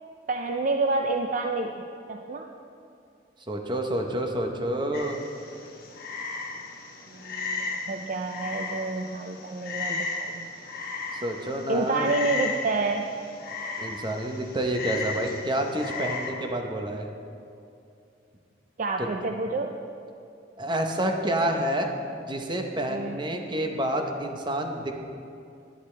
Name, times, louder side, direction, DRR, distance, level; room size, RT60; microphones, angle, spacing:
voice 1, 0.3-2.5 7.1-10.5 11.7-13.1 18.8-19.8 22.9-23.2, right 3 dB, 45° right, 3 dB, 0.4 m, -29 dB
voice 2, 3.5-5.2 11.1-12.2 13.8-17.1 19.0-19.1 20.6-21.9 22.2-24.9, right 1 dB, 25° right, 3 dB, 0.8 m, -28 dB
Frog, 4.9-16.3, left 4 dB, 55° left, 1.1 m, -35 dB
11.5 x 10.0 x 3.3 m, 2.5 s
head